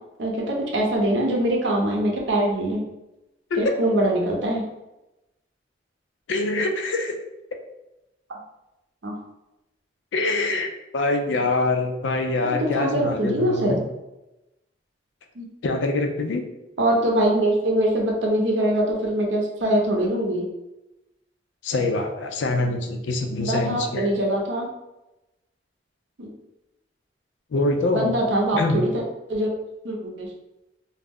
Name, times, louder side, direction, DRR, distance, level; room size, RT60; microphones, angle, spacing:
voice 1, 0.2-2.8 3.6-4.6 8.3-8.4 9.0-9.2 12.4-13.8 15.4-15.5 16.8-20.5 23.4-24.7 26.2-26.3 27.9-29.0 29.3-29.5 29.8-30.3, right 1 dB, 80° right, 0 dB, 0.6 m, -23 dB
voice 2, 6.3-7.1 10.1-13.8 15.6-16.4 21.6-24.1 27.5-28.1 28.5-28.8, left 2 dB, 80° left, 5 dB, 0.4 m, -24 dB
2.3 x 2.0 x 3.5 m, 0.95 s
head